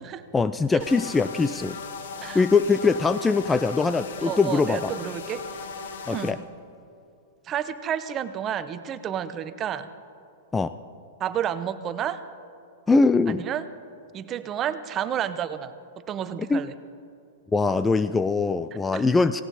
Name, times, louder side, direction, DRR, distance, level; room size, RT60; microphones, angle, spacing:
voice 1, 0.3-1.8 2.2-4.9 6.1-6.4 10.5-10.7 12.9-13.4 16.5-16.6 17.5-19.4, left 4 dB, 15° left, 13 dB, 0.4 m, -22 dB
sound 1, 0.8-6.3, left 5 dB, 65° left, 1.3 m, -37 dB
voice 2, 4.2-5.5 6.1-6.4 7.4-9.9 11.2-12.2 13.3-13.7 14.1-15.7 16.1-16.7 18.9-19.1, right 9 dB, 30° right, 12 dB, 0.9 m, -30 dB
18.0 x 17.0 x 4.1 m, 2.6 s
hypercardioid pair, 110°, 0 cm